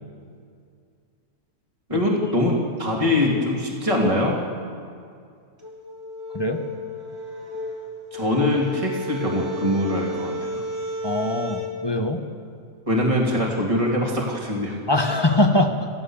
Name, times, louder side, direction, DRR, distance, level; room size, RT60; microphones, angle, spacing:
voice 1, 1.9-4.4 8.1-10.6 12.9-14.8, left 1 dB, 20° right, -2 dB, 2.8 m, -23 dB
sound 1, 5.6-11.7, left 1 dB, 45° right, 3.8 m, -33 dB
voice 2, 11.0-12.2 14.9-15.9, left 1 dB, 15° left, 6 dB, 1.3 m, -22 dB
28.5 x 15.5 x 7.3 m, 2.3 s
omnidirectional pair, 1.6 m